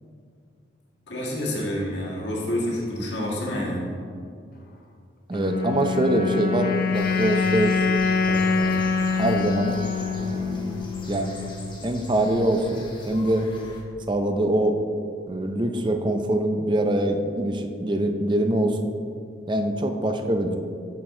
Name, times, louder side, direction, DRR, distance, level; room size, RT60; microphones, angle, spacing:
voice 1, 1.1-3.9, left 1 dB, 65° left, -4 dB, 1.6 m, -28 dB
sound 1, 5.3-11.7, left 5 dB, 50° left, 0.6 m, -25 dB
voice 2, 5.3-7.8 8.3-8.8 9.2-9.8 10.2-10.8 11.1-11.4 11.8-13.5 14.1-14.8 15.3-18.9 19.5-20.6, right 1 dB, 25° right, 5 dB, 0.5 m, -24 dB
sound 2, 6.9-13.8, equal, 25° left, 1.0 m, -39 dB
8.5 x 6.0 x 3.7 m, 2.4 s
head